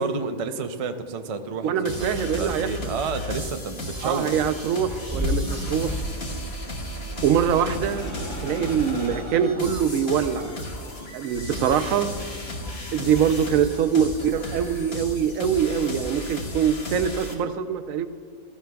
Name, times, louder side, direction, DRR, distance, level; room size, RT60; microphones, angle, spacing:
voice 1, 0.0-4.3, right 4 dB, 50° right, 7 dB, 0.4 m, -30 dB
voice 2, 1.6-2.9 4.0-6.0 7.2-8.1 8.4-10.5 11.1-12.1 12.9-18.1, right 8 dB, 75° right, 10 dB, 1.0 m, -23 dB
sound 1, 1.8-17.3, left 1 dB, 50° left, 1.5 m, -34 dB
sound 2, 4.9-6.2 7.1-9.7, left 1 dB, 5° left, 1.2 m, -32 dB
15.5 x 14.0 x 2.3 m, 2.3 s
omnidirectional pair, 1.4 m